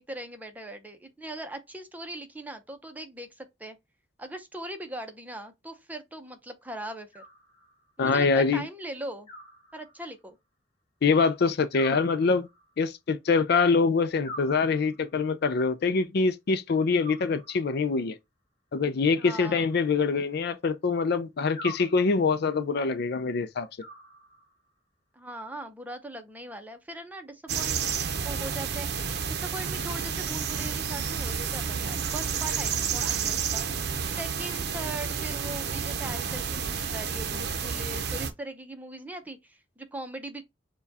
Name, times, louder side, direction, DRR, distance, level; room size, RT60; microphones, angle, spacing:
voice 1, 0.0-3.8 4.2-7.2 8.0-9.3 9.7-10.4 19.2-19.7 25.1-28.0 28.2-33.6 34.2-40.4, right 1 dB, 10° right, 0.6 m, -40 dB
Animal, 7.1-8.0 9.3-10.3 11.7-12.8 14.2-15.2 17.0-17.9 19.2-20.3 21.6-22.5 23.8-24.7, right 1 dB, 30° left, 1.0 m, -46 dB
voice 2, 8.0-8.6 11.0-12.5 12.8-18.2 18.7-23.7, left 4 dB, 60° left, 0.4 m, -24 dB
sound 1, 27.5-38.3, right 6 dB, 60° right, 0.6 m, -30 dB
6.8 x 2.3 x 2.7 m
head